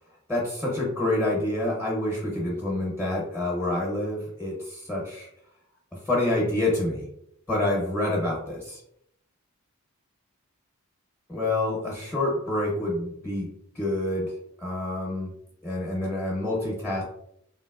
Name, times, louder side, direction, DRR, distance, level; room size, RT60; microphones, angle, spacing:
voice 1, 0.3-5.3 6.0-7.1 7.5-8.8 11.3-13.5 13.7-14.3 14.6-15.3 15.6-17.0, left 1 dB, 10° left, -4 dB, 0.6 m, -27 dB
3.0 x 2.9 x 2.3 m, 0.74 s
head